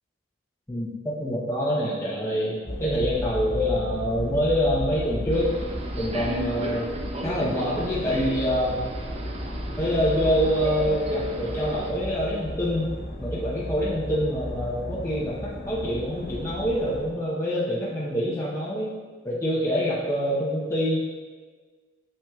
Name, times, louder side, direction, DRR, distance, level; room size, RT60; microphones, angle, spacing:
voice 1, 0.7-6.9 7.2-8.8 9.8-12.9 13.2-18.9 19.2-21.0, equal, 15° left, -7 dB, 0.8 m, -26 dB
sound 1, 2.6-17.1, equal, 55° left, 1.0 m, -34 dB
Subway metro underground, 5.3-11.9, equal, 35° right, 0.6 m, -34 dB
7.0 x 5.9 x 2.3 m, 1.4 s
head